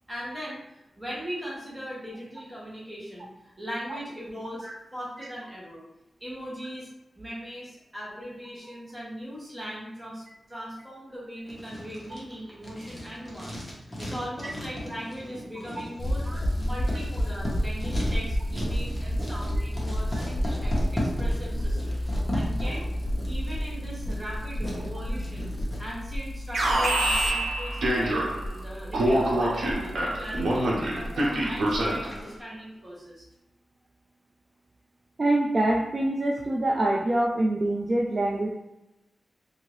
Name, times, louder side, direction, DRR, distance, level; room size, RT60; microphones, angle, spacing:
voice 1, 0.1-0.6 1.0-5.8 6.2-6.9 7.1-22.0 22.3-22.8 23.3-25.5 25.8-28.3 28.5-29.7 30.0-33.2, equal, 10° right, -6 dB, 1.2 m, -39 dB
Writing, 11.5-25.8, equal, 20° left, 0.9 m, -36 dB
sound 1, 16.0-32.3, equal, 45° left, 0.4 m, -31 dB
Alarm, 26.5-28.5 28.9-32.2, right 1 dB, 85° right, 0.7 m, -26 dB
voice 2, 35.2-38.5, right 1 dB, 40° right, -1 dB, 0.3 m, -25 dB
2.8 x 2.6 x 3.1 m, 0.94 s
wide cardioid pair, 90°, 0 cm